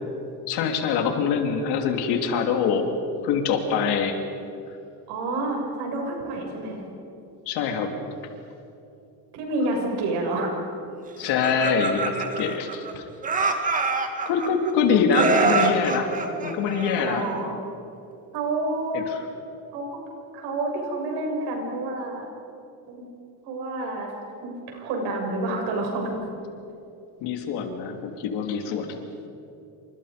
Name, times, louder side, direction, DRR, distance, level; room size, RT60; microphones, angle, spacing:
voice 1, 0.5-2.9 3.2-4.2 7.5-7.9 11.2-13.0 13.4-13.6 14.3-16.1 16.4-17.3 18.9-19.2 27.2-29.0, left 6 dB, 80° left, 4 dB, 3.4 m, -24 dB
voice 2, 5.1-6.8 9.3-10.5 15.1-15.6 17.0-17.5 18.3-19.1 19.7-20.0 20.3-22.2 22.9-23.0 23.4-24.1 24.4-26.1, right 2 dB, 90° right, 1 dB, 7.1 m, -28 dB
Laughter, 11.2-12.9 13.2-14.7 15.1-17.4, right 4 dB, 20° right, 1.9 m, -25 dB
29.0 x 27.0 x 5.3 m, 2.8 s
cardioid pair, 165°, 39 cm